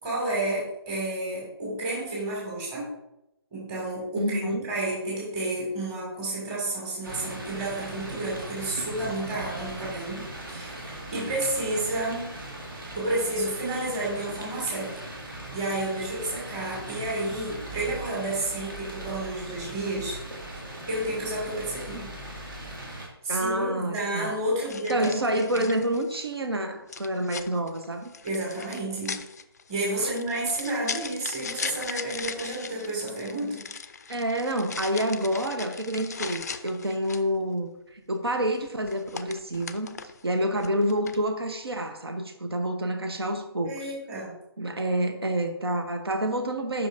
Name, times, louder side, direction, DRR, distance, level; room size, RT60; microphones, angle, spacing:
voice 1, 0.0-2.9 3.5-12.3 12.9-20.2 20.9-22.1 22.9-25.1 25.5-25.7 28.2-29.2 29.7-33.6 43.6-44.3, right 2 dB, 15° right, -5 dB, 2.3 m, -31 dB
voice 2, 4.2-4.7 23.3-24.3 24.9-28.1 30.0-30.1 34.1-40.0 40.2-44.0 44.6-46.9, right 1 dB, 70° right, 6 dB, 0.9 m, -28 dB
sound 1, 7.0-23.1, right 1 dB, 55° right, 2.0 m, -39 dB
sound 2, 23.4-23.6 24.7-26.3 26.9-37.4 38.5-40.2 40.6-41.3, left 5 dB, 40° left, 0.4 m, -38 dB
7.9 x 5.8 x 2.6 m, 0.88 s
figure-of-eight pair, 145°, 13 cm